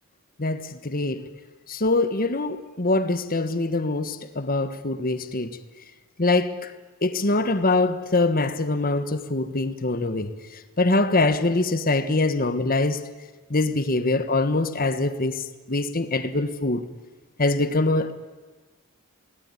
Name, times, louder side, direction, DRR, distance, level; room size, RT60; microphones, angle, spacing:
voice 1, 0.4-1.3 1.7-5.5 6.2-6.5 7.0-10.3 10.8-13.0 13.5-16.8 17.4-18.1, left 2 dB, 40° left, 1.4 m, -23 dB
27.5 x 19.5 x 9.9 m
head